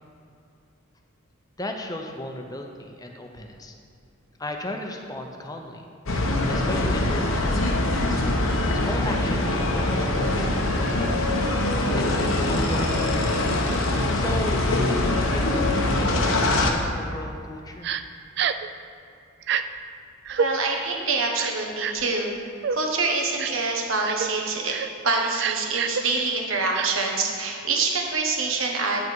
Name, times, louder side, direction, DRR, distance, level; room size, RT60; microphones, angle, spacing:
voice 1, 1.6-3.7 4.4-5.8 6.5-8.2 8.8-11.2 11.9-13.3 14.1-17.9, left 1 dB, 20° left, 3 dB, 0.7 m, -35 dB
sound 1, 6.1-16.7, left 2 dB, 80° left, 1.0 m, -23 dB
Crying sobbing, 17.8-18.0 18.4-18.7 19.4-19.6 20.3-20.5 21.4-22.1 22.6-22.8 23.4-23.6 24.0-24.3 24.7-24.9 25.4-26.0 26.7-26.9, right 8 dB, 55° right, 0.3 m, -27 dB
voice 2, 20.3-22.3 22.7-24.7 25.0-29.0, right 3 dB, 75° right, 1 dB, 1.4 m, -25 dB
9.2 x 8.3 x 4.7 m, 2.4 s
head